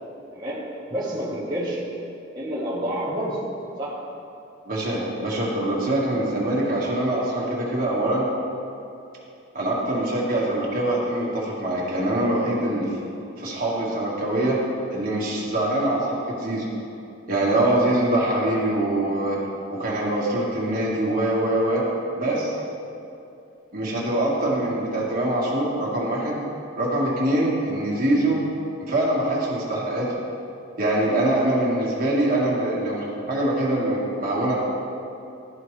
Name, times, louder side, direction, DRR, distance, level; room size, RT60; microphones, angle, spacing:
voice 1, 0.3-0.6 0.9-1.8 2.3-3.4 3.8-4.0, equal, 20° right, -9 dB, 1.1 m, -28 dB
voice 2, 4.7-8.3 9.5-13.0 13.4-14.6 14.9-16.7 17.3-19.4 19.7-21.8 22.2-22.6 23.7-26.4 26.8-28.4 28.9-30.2 30.8-34.5, right 1 dB, 45° right, -5 dB, 1.5 m, -24 dB
13.0 x 4.6 x 3.1 m, 2.6 s
head